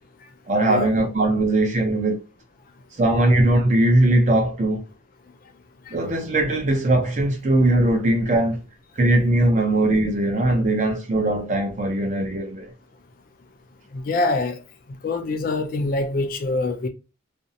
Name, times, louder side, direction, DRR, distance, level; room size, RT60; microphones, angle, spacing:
voice 1, 0.5-2.2 3.0-4.8 5.9-8.6 9.0-12.7, right 1 dB, 35° right, 0.6 m, -20 dB
voice 2, 13.9-14.6 15.0-16.9, left 2 dB, 45° left, 0.3 m, -24 dB
2.5 x 2.0 x 2.6 m
head